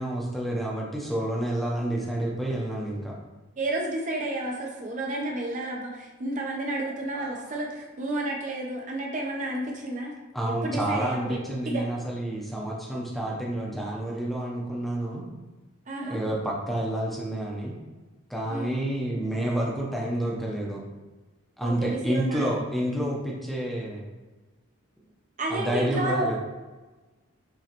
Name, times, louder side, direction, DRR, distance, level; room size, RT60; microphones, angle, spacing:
voice 1, 0.0-3.2 7.1-7.3 10.3-15.3 16.0-17.8 18.3-20.8 21.6-24.1 25.5-26.4, right 1 dB, ahead, -4 dB, 0.6 m, -29 dB
voice 2, 3.6-10.1 10.4-11.4 11.7-11.9 15.9-16.2 18.5-18.8 21.6-22.6 25.4-26.4, right 1 dB, 35° right, 0 dB, 0.5 m, -31 dB
6.0 x 3.0 x 2.9 m, 1.2 s
head